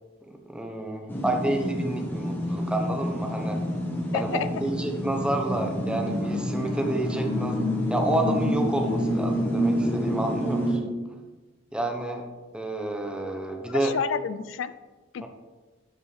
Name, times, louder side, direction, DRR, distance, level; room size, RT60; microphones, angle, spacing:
voice 1, 0.2-3.6 4.1-7.6 7.9-10.8 11.7-12.2 12.5-13.9 15.2-15.3, right 1 dB, 5° right, 2 dB, 0.9 m, -29 dB
sound 1, 1.1-10.8, equal, 10° left, 1.2 m, -28 dB
voice 2, 4.1-4.5 13.7-14.7 15.1-15.3, left 7 dB, 65° left, 14 dB, 0.3 m, -30 dB
12.5 x 5.3 x 3.3 m, 1.3 s
head